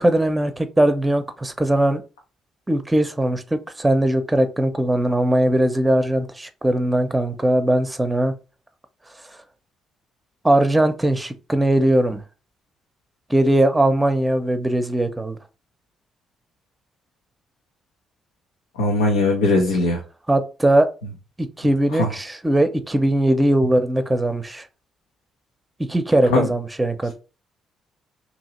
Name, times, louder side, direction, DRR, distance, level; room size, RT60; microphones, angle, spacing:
voice 1, 0.0-2.0 2.7-8.3 10.4-12.2 13.3-15.4 20.3-20.9 21.4-24.7 25.8-27.1, right 1 dB, 15° right, 0.7 m, -20 dB
voice 2, 18.8-20.0 21.9-22.1 26.3-26.5, left 2 dB, 85° left, 0.7 m, -19 dB
2.9 x 2.8 x 4.1 m
hypercardioid pair, 45°, 0 cm